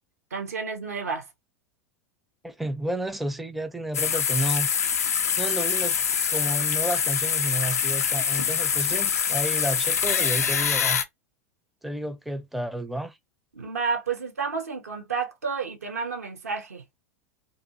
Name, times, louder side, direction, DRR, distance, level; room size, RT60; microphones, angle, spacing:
voice 1, 0.3-1.3 13.5-16.8, right 5 dB, 80° right, 0.8 m, -30 dB
voice 2, 2.4-4.7 5.4-6.0 6.3-11.0 11.8-13.2, right 1 dB, ahead, 0.4 m, -31 dB
sound 1, 3.9-11.0, left 7 dB, 80° left, 0.4 m, -25 dB
2.5 x 2.3 x 2.6 m
figure-of-eight pair, 85°, 8 cm